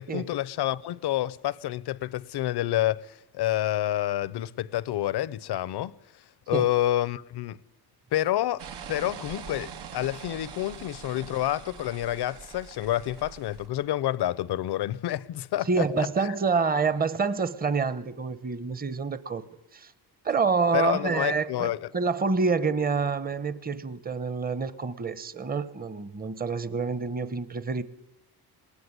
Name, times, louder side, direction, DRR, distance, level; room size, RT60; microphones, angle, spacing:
voice 1, 0.0-5.9 6.5-7.6 8.1-16.3 20.7-21.9, left 13 dB, 80° left, 0.8 m, -28 dB
sound 1, 8.6-13.7, right 7 dB, 85° right, 2.4 m, -43 dB
voice 2, 15.7-19.4 19.7-19.9 20.2-27.8, right 5 dB, 25° right, 0.9 m, -27 dB
20.5 x 19.0 x 9.7 m
cardioid pair, 155°, 39 cm